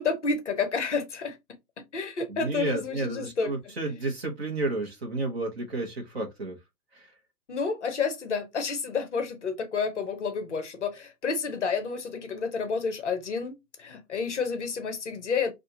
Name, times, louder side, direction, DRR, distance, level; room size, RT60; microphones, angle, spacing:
voice 1, 0.0-1.4 1.9-3.5 7.5-13.5 13.8-15.5, left 5 dB, 45° left, 0.7 m, -30 dB
voice 2, 2.3-6.6 6.9-7.1, right 2 dB, 40° right, 0.9 m, -31 dB
2.8 x 2.5 x 3.6 m
hypercardioid pair, 175°, 49 cm